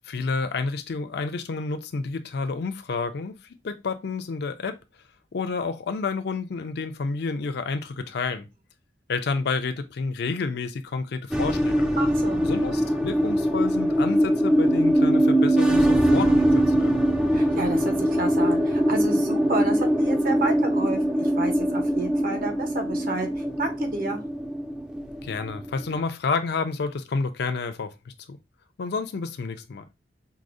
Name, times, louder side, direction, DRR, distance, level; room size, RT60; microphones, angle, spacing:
voice 1, 0.1-3.3 3.6-4.8 5.3-8.5 9.1-11.9 12.4-17.0 25.2-27.9 28.3-28.4 28.8-29.8, left 4 dB, 65° left, 0.4 m, -30 dB
sound 1, 11.3-26.0, equal, 5° right, 0.4 m, -22 dB
voice 2, 12.0-12.5 17.3-24.2, right 2 dB, 55° right, 0.8 m, -31 dB
4.7 x 2.0 x 2.5 m
head